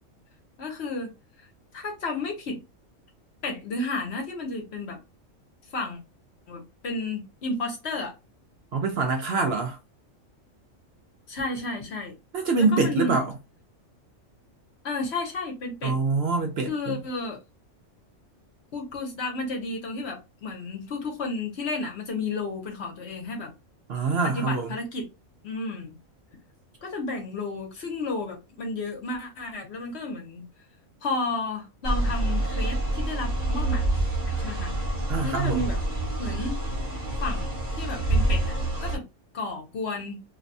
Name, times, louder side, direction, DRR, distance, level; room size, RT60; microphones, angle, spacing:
voice 1, 0.6-1.1 1.7-2.6 3.4-5.0 5.7-6.0 6.5-8.1 11.3-12.2 12.6-13.2 14.8-16.0 16.7-17.4 18.7-23.5 24.2-25.1 25.4-25.9 26.8-30.5 31.0-33.8 34.3-34.7 35.2-35.8 36.2-36.6 37.2-39.0 39.3-40.2, left 3 dB, 60° left, 1.0 m, -32 dB
voice 2, 8.7-9.8 12.3-13.3 15.8-17.0 23.9-24.7 35.1-35.6, right 4 dB, 60° right, 0.7 m, -25 dB
sound 1, 31.8-39.0, right 1 dB, 35° right, 0.9 m, -27 dB
2.6 x 2.2 x 2.5 m
omnidirectional pair, 1.4 m